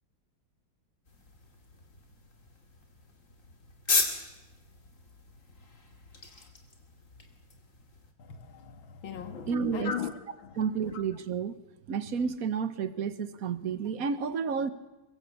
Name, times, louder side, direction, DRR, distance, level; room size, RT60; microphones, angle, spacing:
sound 1, 1.1-8.1, left 3 dB, 35° left, 2.7 m, -36 dB
voice 1, 8.2-10.1 10.4-10.6 10.9-11.0, left 7 dB, 65° left, 2.3 m, -38 dB
voice 2, 9.5-9.9 10.6-11.6 11.9-14.7, right 6 dB, 50° right, 1.4 m, -31 dB
23.5 x 23.0 x 7.1 m
omnidirectional pair, 2.3 m